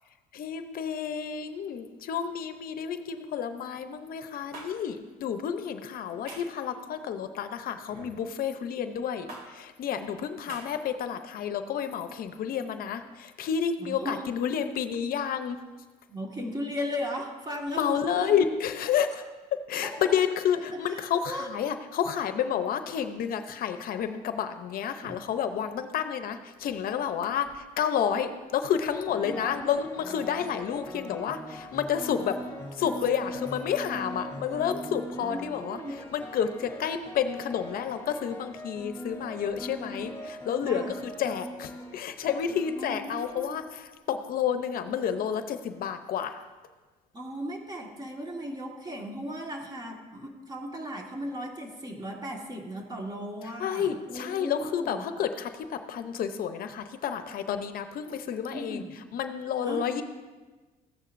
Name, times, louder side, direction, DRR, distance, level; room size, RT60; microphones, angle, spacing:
voice 1, 0.3-15.6 17.7-19.2 19.7-32.4 32.7-46.4 53.4-58.8 59.1-60.0, left 8 dB, 60° left, 9 dB, 0.7 m, -30 dB
sound 1, 4.5-4.7 6.3-6.6 7.9-8.2 9.3-9.4 10.5-10.6, right 2 dB, 55° right, 2.5 m, -43 dB
voice 2, 13.8-14.2 16.1-18.4 19.8-19.9 20.7-21.0 21.3-21.5 25.0-25.1 29.2-29.7 34.9-35.9 39.6-39.8 40.7-40.9 42.7-43.6 47.1-55.0 58.5-58.9 59.6-60.0, equal, 25° right, 1 dB, 1.6 m, -37 dB
sound 2, 27.2-27.6 28.8-43.7, equal, 15° left, 2.9 m, -42 dB
14.5 x 9.7 x 2.6 m, 1.3 s
cardioid pair, 110°, 17 cm